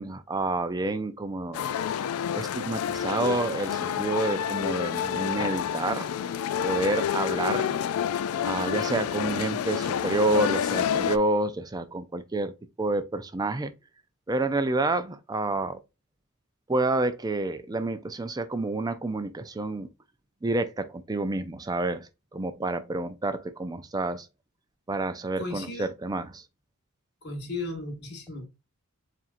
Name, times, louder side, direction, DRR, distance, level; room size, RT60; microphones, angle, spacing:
voice 1, 0.0-1.7 2.3-6.1 6.6-7.7 8.4-12.5 12.8-13.7 14.3-15.8 16.7-19.9 20.4-24.3 24.9-26.4, right 2 dB, 15° right, 0.4 m, -29 dB
sound 1, 1.5-11.2, left 8 dB, 70° left, 0.3 m, -28 dB
voice 2, 25.4-25.9 27.2-28.5, left 2 dB, 50° left, 1.5 m, -35 dB
7.2 x 2.5 x 2.5 m
head